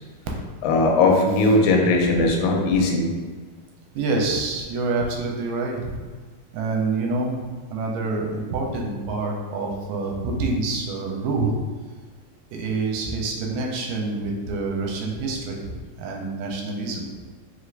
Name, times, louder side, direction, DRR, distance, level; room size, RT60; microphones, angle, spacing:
voice 1, 0.6-3.1, left 2 dB, 90° left, 1 dB, 2.3 m, -19 dB
voice 2, 4.0-5.9 6.5-7.4 7.7-11.5 12.5-17.1, right 3 dB, 90° right, 0 dB, 2.3 m, -27 dB
5.2 x 3.2 x 2.5 m, 1.5 s
omnidirectional pair, 3.9 m